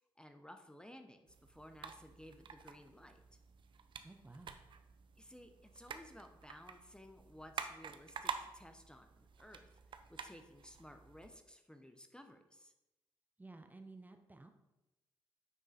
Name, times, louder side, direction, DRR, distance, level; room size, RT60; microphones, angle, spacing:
voice 1, 0.2-3.2 5.2-9.7 10.1-12.7, equal, 10° left, 6 dB, 0.7 m, -56 dB
sound 1, 1.3-11.3, right 6 dB, 60° right, 0.6 m, -49 dB
voice 2, 4.0-4.6 13.4-14.5, right 2 dB, 20° right, 6 dB, 0.7 m, -54 dB
9.3 x 3.7 x 4.1 m, 0.97 s
cardioid pair, 60°, 9 cm